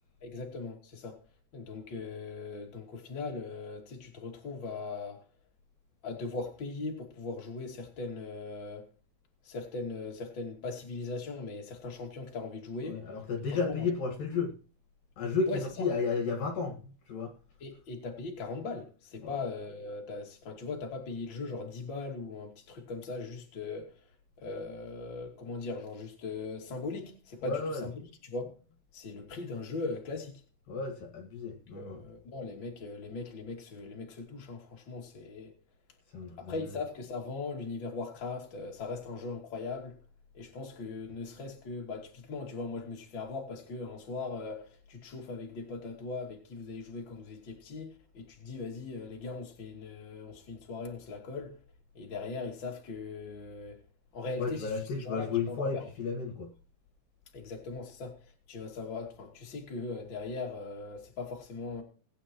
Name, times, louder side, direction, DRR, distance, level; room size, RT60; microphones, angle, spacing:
voice 1, 0.2-1.2 1.5-5.2 6.0-8.9 9.4-13.0 13.6-13.8 15.5-15.9 17.6-23.9 24.4-28.5 28.9-30.4 31.7-35.5 36.4-40.0 40.3-51.6 51.9-53.8 54.1-54.7 55.0-55.8 57.3-61.8, left 3 dB, 30° left, 2.8 m, -39 dB
voice 2, 12.8-14.5 15.2-16.8 17.1-17.3 19.2-19.4 27.4-27.8 30.7-32.1 36.1-36.8 54.4-56.5, left 4 dB, 60° left, 3.2 m, -33 dB
20.5 x 9.7 x 3.0 m
omnidirectional pair, 4.8 m